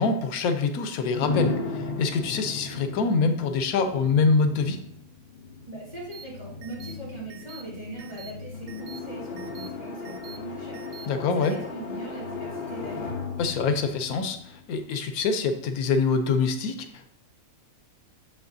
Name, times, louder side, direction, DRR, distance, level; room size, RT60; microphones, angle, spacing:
voice 1, 0.0-4.8 11.1-11.5 13.4-17.1, left 4 dB, 90° left, 8 dB, 1.1 m, -25 dB
sound 1, 1.2-15.0, left 3 dB, 50° left, 1.0 m, -36 dB
voice 2, 5.7-13.1, right 2 dB, 30° right, -7 dB, 2.3 m, -40 dB
sound 2, 6.1-6.2 6.6-6.9 7.3-7.6 8.0-8.3 8.7-9.0 9.4-9.7 10.0-10.4 10.7-11.1 11.4-11.6, right 7 dB, 60° right, 0.8 m, -45 dB
6.7 x 5.7 x 2.6 m, 0.75 s
omnidirectional pair, 1.5 m